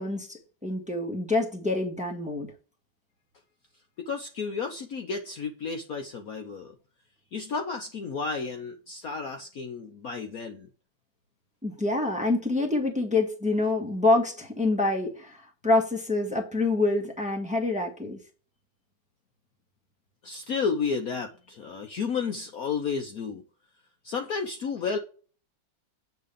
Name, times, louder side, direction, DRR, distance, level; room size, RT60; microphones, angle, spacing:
voice 1, 0.0-2.5 11.6-18.2, left 2 dB, 5° right, 1.3 m, -26 dB
voice 2, 4.0-6.8 7.3-10.7 20.2-23.4 24.0-25.0, left 5 dB, 55° left, 1.1 m, -32 dB
8.4 x 3.7 x 6.8 m
omnidirectional pair, 2.2 m